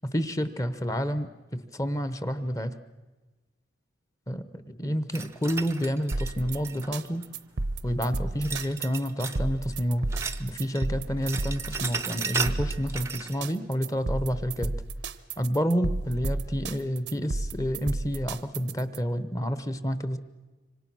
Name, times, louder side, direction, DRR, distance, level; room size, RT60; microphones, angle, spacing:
voice 1, 0.0-2.7 4.3-7.2 7.8-10.1 10.4-14.7 15.4-20.2, equal, 15° left, 12 dB, 0.9 m, -29 dB
sound 1, 5.1-7.2 8.4-9.5 9.7-10.9 11.1-13.4, right 5 dB, 15° right, 0.7 m, -35 dB
sound 2, 6.1-19.0, right 2 dB, 70° right, 0.9 m, -32 dB
26.0 x 25.0 x 6.2 m, 1.2 s
head